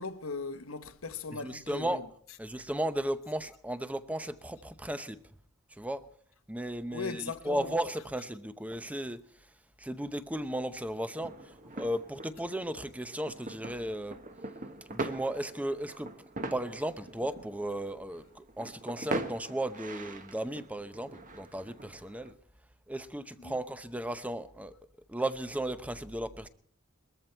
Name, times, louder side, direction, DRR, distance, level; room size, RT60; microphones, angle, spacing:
voice 1, 0.0-2.0 6.9-7.7 23.4-23.5, left 4 dB, 75° left, 1.2 m, -38 dB
voice 2, 1.3-2.0 2.4-5.2 5.7-6.1 6.5-9.2 9.8-14.2 14.9-16.1 16.5-22.3 22.9-24.7 25.1-26.5, right 1 dB, 5° right, 0.8 m, -35 dB
sound 1, 11.2-22.3, right 2 dB, 40° right, 1.4 m, -42 dB
21.5 x 14.0 x 4.5 m
head